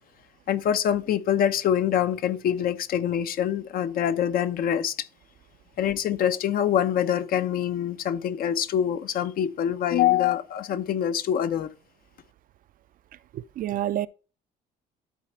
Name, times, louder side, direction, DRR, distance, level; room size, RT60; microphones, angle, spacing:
voice 1, 0.5-5.1 5.8-11.7, left 10 dB, 60° left, 0.8 m, -25 dB
voice 2, 13.3-14.1, right 12 dB, 55° right, 0.5 m, -28 dB
12.0 x 4.1 x 4.4 m
cardioid pair, 110°, 17 cm